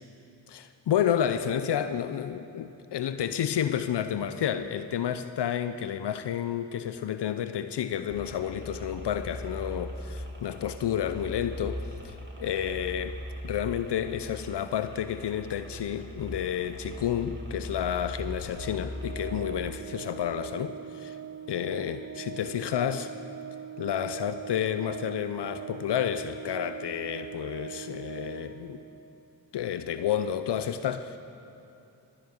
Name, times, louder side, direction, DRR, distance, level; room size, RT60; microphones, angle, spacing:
voice 1, 0.5-13.2 13.4-21.2 21.5-23.1 23.8-28.8 29.5-31.2, left 9 dB, 60° left, 11 dB, 0.7 m, -30 dB
sound 1, 8.1-19.6, equal, 25° right, 2.3 m, -40 dB
Organ, 18.3-29.0, right 9 dB, 45° right, 1.9 m, -42 dB
14.0 x 7.4 x 8.3 m, 2.8 s
supercardioid pair, 45°, 46 cm